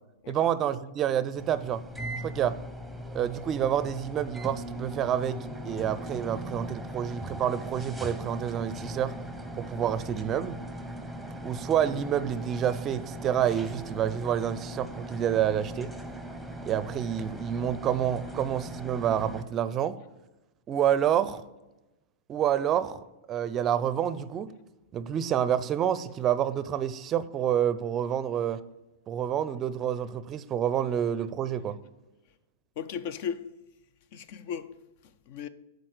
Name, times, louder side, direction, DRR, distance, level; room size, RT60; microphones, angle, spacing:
voice 1, 0.3-1.8 2.2-2.6 3.1-9.1 9.6-10.6 11.4-15.9 16.6-20.0 20.7-21.4 22.3-23.0 23.3-24.5 24.9-28.6 29.1-31.8, right 9 dB, 30° right, 0.5 m, -28 dB
sound 1, 1.4-19.4, right 1 dB, ahead, 0.9 m, -39 dB
voice 2, 32.8-33.5 34.1-34.7 35.0-35.5, left 8 dB, 55° left, 0.5 m, -36 dB
9.9 x 4.0 x 6.5 m
hypercardioid pair, 120°, 0 cm